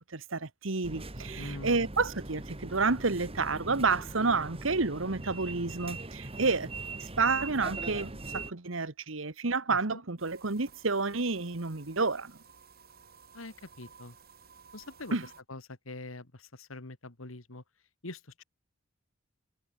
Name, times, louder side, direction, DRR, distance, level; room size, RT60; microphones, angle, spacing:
voice 1, 0.1-6.7 7.0-12.4 15.1-15.2, right 4 dB, 70° right, 1.5 m, -30 dB
sound 1, 0.8-8.5, right 3 dB, 30° right, 2.1 m, -41 dB
voice 2, 1.3-1.9 9.7-10.0 13.3-14.2 14.7-15.2 15.5-17.6 18.0-18.4, left 2 dB, 85° left, 2.5 m, -44 dB
sound 2, 10.2-15.4, right 6 dB, 50° right, 3.5 m, -56 dB
head